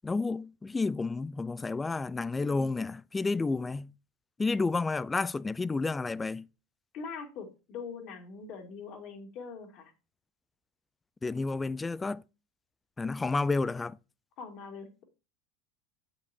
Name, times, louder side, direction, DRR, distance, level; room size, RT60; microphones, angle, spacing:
voice 1, 0.0-3.9 4.4-6.5 11.2-12.2 13.0-14.0, left 3 dB, 15° left, 0.4 m, -30 dB
voice 2, 6.9-9.9 14.4-15.0, left 5 dB, 50° left, 2.4 m, -42 dB
8.2 x 7.9 x 2.8 m
hypercardioid pair, 90°, 0 cm